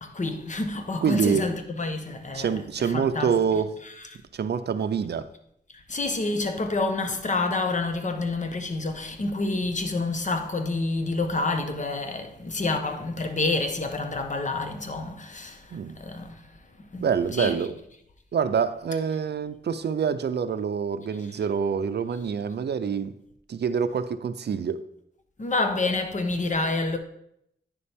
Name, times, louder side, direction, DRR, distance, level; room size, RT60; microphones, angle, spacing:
voice 1, 0.0-3.3 5.9-15.6 16.0-16.3 16.9-17.6 25.4-27.0, left 3 dB, 40° left, 1.1 m, -28 dB
voice 2, 1.0-1.5 2.3-3.8 4.3-5.3 15.7-16.0 17.0-17.8 18.3-23.1 23.5-24.8, right 7 dB, 65° right, 0.5 m, -26 dB
9.4 x 6.9 x 3.6 m
wide cardioid pair, 90°, 18 cm